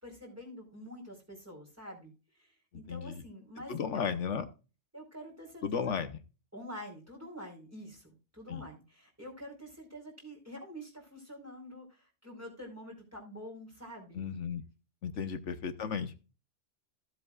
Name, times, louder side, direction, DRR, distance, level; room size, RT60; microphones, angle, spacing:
voice 1, 0.0-4.0 4.9-5.9 6.5-14.3, equal, 10° right, -1 dB, 4.4 m, -47 dB
voice 2, 2.9-3.2 3.7-4.4 5.6-6.2 8.5-8.6 14.1-14.6 15.0-16.1, left 6 dB, 80° left, 9 dB, 1.3 m, -34 dB
15.5 x 7.9 x 2.4 m, 0.32 s
omnidirectional pair, 1.2 m